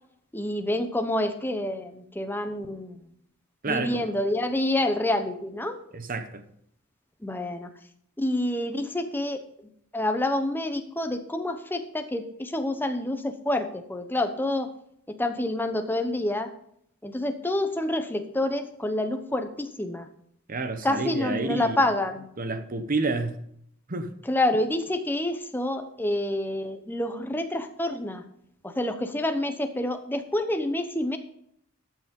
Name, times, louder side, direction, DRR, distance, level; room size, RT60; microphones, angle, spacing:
voice 1, 0.3-3.1 3.6-5.8 7.2-7.7 8.2-9.4 9.9-14.7 15.2-16.5 17.0-20.1 20.8-22.3 24.2-28.2 28.6-31.2, left 1 dB, 10° left, 7 dB, 0.9 m, -28 dB
voice 2, 3.6-4.0 5.9-6.4 20.5-21.8 22.4-23.4 23.9-24.1, right 3 dB, 40° right, 9 dB, 1.0 m, -29 dB
13.5 x 6.2 x 5.3 m, 0.71 s
head